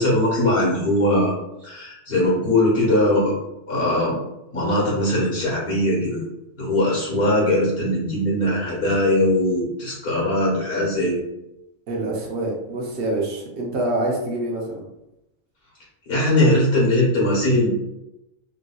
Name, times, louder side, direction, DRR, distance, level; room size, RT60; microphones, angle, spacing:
voice 1, 0.0-1.3 1.6-3.3 3.7-4.1 4.5-6.2 6.6-11.2 16.1-17.7, left 1 dB, 55° left, -5 dB, 1.7 m, -20 dB
voice 2, 11.9-14.8, right 1 dB, 70° right, -2 dB, 1.0 m, -26 dB
3.6 x 2.6 x 2.3 m, 0.89 s
omnidirectional pair, 1.2 m